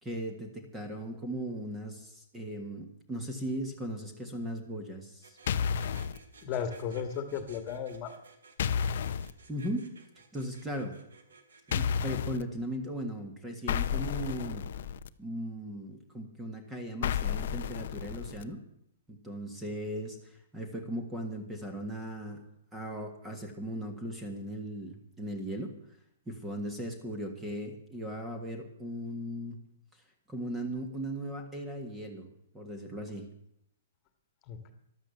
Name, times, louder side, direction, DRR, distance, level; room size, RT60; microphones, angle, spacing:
voice 1, 0.0-5.7 9.5-9.9 10.3-11.0 11.7-14.7 15.2-18.6 19.1-22.4 22.7-25.8 26.3-29.7 30.3-32.3 32.5-33.3, equal, 10° right, 5 dB, 1.7 m, -38 dB
sound 1, 5.2-12.0, right 4 dB, 85° right, 2.8 m, -55 dB
sound 2, 5.5-6.2 8.6-9.3 11.7-12.4 13.7-15.1 17.0-18.4, left 8 dB, 50° left, 0.8 m, -31 dB
voice 2, 6.4-8.1 34.5-34.7, left 7 dB, 25° left, 8 dB, 1.8 m, -35 dB
13.5 x 12.0 x 7.2 m, 0.76 s
hypercardioid pair, 165°, 0 cm